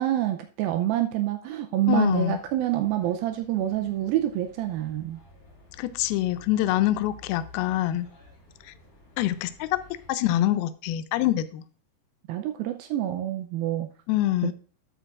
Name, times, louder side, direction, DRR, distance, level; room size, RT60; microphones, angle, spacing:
voice 1, 0.0-5.2 12.3-13.9 14.4-14.5, right 13 dB, 85° right, 2.1 m, -27 dB
voice 2, 1.9-2.4 5.8-8.1 8.7-8.8 9.2-9.8 10.1-11.6 14.1-14.5, left 14 dB, 80° left, 2.2 m, -25 dB
sound 1, 2.1-10.1, left 1 dB, 60° left, 5.1 m, -52 dB
13.0 x 8.0 x 2.5 m
omnidirectional pair, 4.8 m